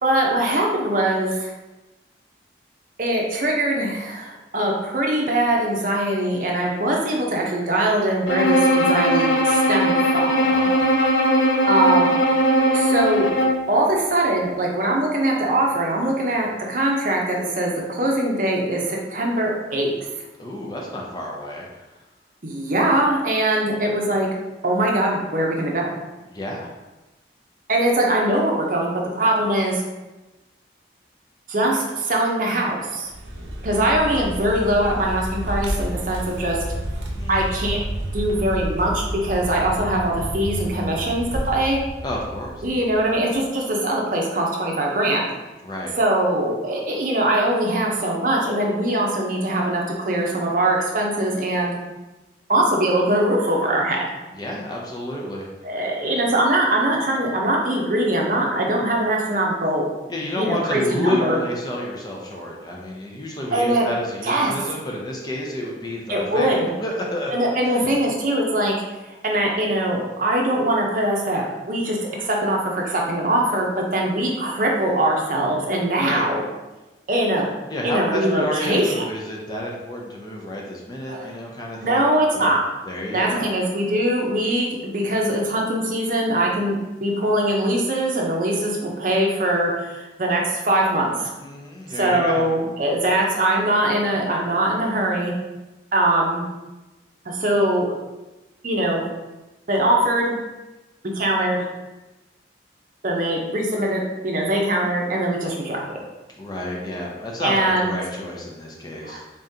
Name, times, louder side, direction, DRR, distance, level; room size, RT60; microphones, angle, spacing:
voice 1, 0.0-1.5 3.0-10.3 11.7-12.1 12.7-13.3 13.7-19.9 22.4-24.3 24.6-25.9 27.7-29.8 31.5-33.1 33.6-36.6 37.3-37.8 38.1-41.8 42.6-45.3 46.0-51.8 52.5-54.0 55.6-59.8 60.4-61.4 63.5-63.9 64.2-64.5 66.1-66.7 67.3-68.8 69.2-76.4 77.1-77.5 77.8-79.0 81.1-81.3 81.8-82.6 83.1-84.7 84.9-91.3 91.9-95.3 95.9-96.4 97.3-97.9 98.6-99.0 99.7-100.3 101.1-101.6 103.0-105.8 107.4-107.9 109.0-109.2, right 1 dB, 45° right, -1 dB, 0.6 m, -22 dB
Bowed string instrument, 8.3-13.7, equal, 65° left, 0.6 m, -19 dB
voice 2, 10.4-10.9 20.4-21.8 26.3-26.7 37.2-37.4 42.0-42.6 45.6-45.9 54.4-55.5 60.1-67.8 76.0-76.2 77.7-82.5 82.8-83.5 91.4-92.5 106.4-109.2, left 1 dB, 20° left, -2 dB, 0.5 m, -30 dB
Vehicle, 33.0-43.4, equal, 85° right, 0.7 m, -30 dB
3.7 x 3.6 x 2.7 m, 1.1 s
head